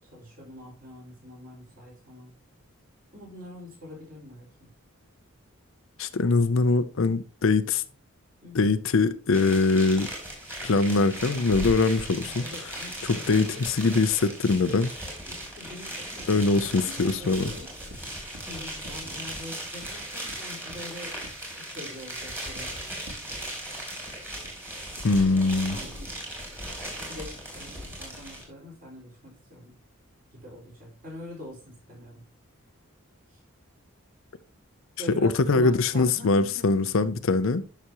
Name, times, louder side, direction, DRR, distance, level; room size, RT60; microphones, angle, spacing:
voice 1, 0.0-2.3 3.1-4.7 8.4-8.7 12.2-14.0 15.3-16.3 16.8-17.7 18.4-21.2 21.5-22.8 25.2-26.5 27.0-29.7 30.3-32.2 33.3-33.4 34.9-36.7, left 1 dB, 40° right, 4.7 m, -44 dB
voice 2, 6.0-7.8 8.5-10.1 10.6-12.7 13.0-14.9 16.3-17.5 25.0-25.8 35.2-37.6, left 3 dB, 60° left, 0.5 m, -23 dB
sound 1, 9.3-28.4, right 1 dB, 10° right, 2.9 m, -38 dB
sound 2, 16.2-16.5 17.2-19.3 19.8-21.9 22.3-23.6 24.4-24.5 24.9-25.0 25.5-25.6 25.8-25.9, equal, 65° right, 2.7 m, -49 dB
11.0 x 5.9 x 2.9 m
head